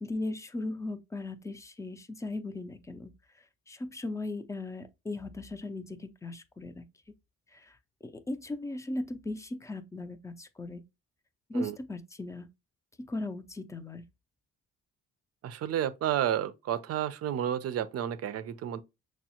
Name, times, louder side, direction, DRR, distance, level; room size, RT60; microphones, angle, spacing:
voice 1, 0.0-3.1 3.7-6.8 7.5-7.7 8.0-10.8 11.5-12.5 13.0-14.0, left 2 dB, 10° left, 0.4 m, -37 dB
voice 2, 15.4-18.8, right 10 dB, 55° right, 0.5 m, -31 dB
6.1 x 2.0 x 2.8 m
cardioid pair, 90°, 30 cm